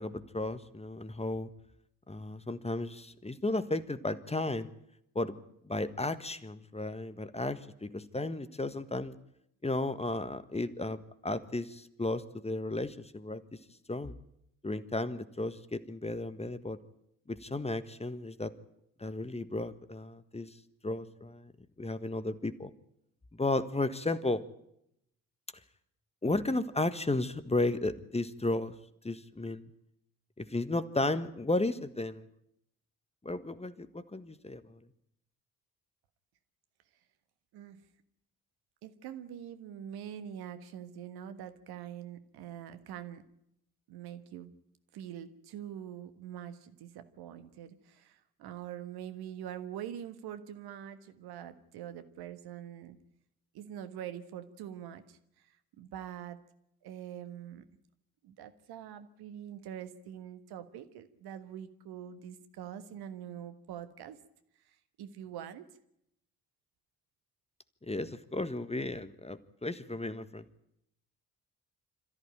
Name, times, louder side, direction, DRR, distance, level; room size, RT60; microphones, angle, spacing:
voice 1, 0.0-1.5 2.1-4.7 5.1-5.4 5.6-9.2 9.6-13.4 13.9-14.1 14.6-16.8 17.3-18.5 19.0-20.5 20.8-21.5 21.8-22.7 23.3-24.4 26.2-28.7 29.0-29.7 30.4-32.3 33.2-34.8 67.8-70.4, left 2 dB, 15° left, 12 dB, 1.5 m, -34 dB
voice 2, 37.5-37.9 38.8-43.3 43.9-44.6 44.9-53.0 53.5-56.4 56.8-57.7 58.2-64.2 64.6-65.7, right 10 dB, 60° right, 10 dB, 1.6 m, -44 dB
27.0 x 14.0 x 9.1 m, 0.78 s
figure-of-eight pair, 40°, 42 cm